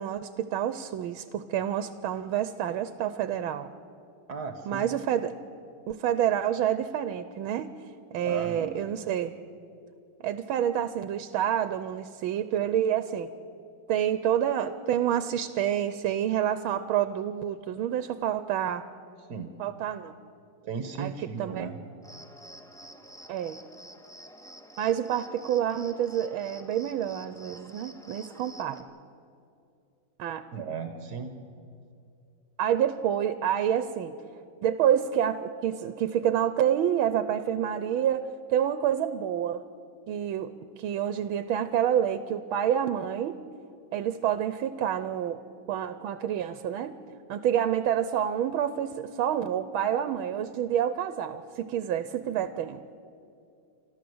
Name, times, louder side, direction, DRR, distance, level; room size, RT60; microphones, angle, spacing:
voice 1, 0.0-3.7 4.7-5.3 5.9-7.8 8.1-9.3 10.2-13.3 13.9-18.8 19.6-20.1 21.0-21.1 21.4-21.7 23.3-23.6 24.8-28.9 30.2-30.5 32.6-34.2 34.6-39.6 40.1-43.4 43.9-45.4 45.7-47.0 47.3-52.8, right 10 dB, 85° right, 12 dB, 1.5 m, -28 dB
voice 2, 4.3-4.9 8.2-8.7 19.3-19.5 20.6-21.8 30.5-31.3, right 5 dB, 55° right, 8 dB, 1.6 m, -36 dB
Cricket, 22.0-28.8, equal, ahead, 1.1 m, -49 dB
28.0 x 13.0 x 7.8 m, 2.5 s
omnidirectional pair, 2.2 m